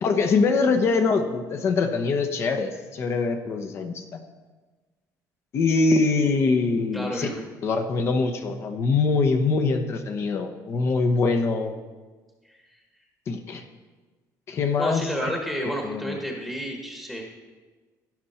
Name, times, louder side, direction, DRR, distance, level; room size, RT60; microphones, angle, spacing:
voice 1, 0.0-4.2 5.5-7.3 7.6-11.7 13.3-13.6 14.5-15.3 15.8-16.2, left 4 dB, 40° left, 7 dB, 0.9 m, -23 dB
voice 2, 6.9-7.4 12.4-12.6 14.8-17.2, equal, 10° left, 0 dB, 1.3 m, -31 dB
12.0 x 11.0 x 4.3 m, 1.3 s
cardioid pair, 155°, 7 cm